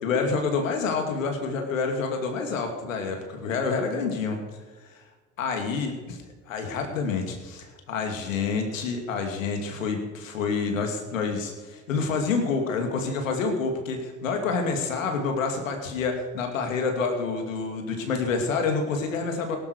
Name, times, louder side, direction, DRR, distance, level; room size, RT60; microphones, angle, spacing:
voice 1, 0.0-4.4 5.4-6.2 6.5-19.6, left 4 dB, 90° left, 4 dB, 2.6 m, -28 dB
18.0 x 11.5 x 4.9 m, 1.3 s
hypercardioid pair, 70°, 38 cm